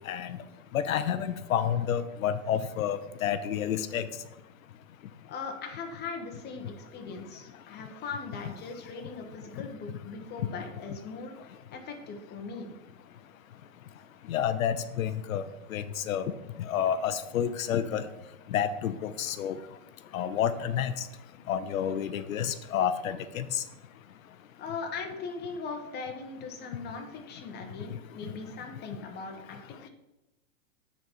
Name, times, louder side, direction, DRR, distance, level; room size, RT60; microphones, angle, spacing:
voice 1, 0.1-0.4 0.7-4.0 14.3-15.4 15.7-16.2 16.6-18.0 18.5-19.6 20.1-20.9 21.5-23.6, left 9 dB, 90° left, 11 dB, 0.7 m, -29 dB
voice 2, 5.3-12.7 24.6-29.9, left 4 dB, 25° left, 3 dB, 1.2 m, -40 dB
9.2 x 4.2 x 4.5 m, 0.97 s
hypercardioid pair, 135°, 39 cm